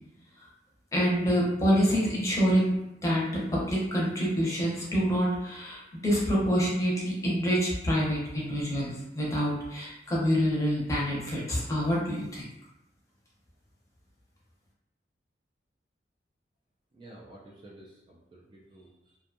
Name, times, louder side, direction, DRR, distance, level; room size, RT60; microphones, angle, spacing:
voice 1, 0.9-2.8 3.0-3.2 3.5-12.4, equal, 20° left, -6 dB, 0.7 m, -26 dB
voice 2, 16.9-19.2, right 1 dB, 30° right, -4 dB, 0.3 m, -51 dB
2.6 x 2.2 x 2.6 m, 0.90 s
head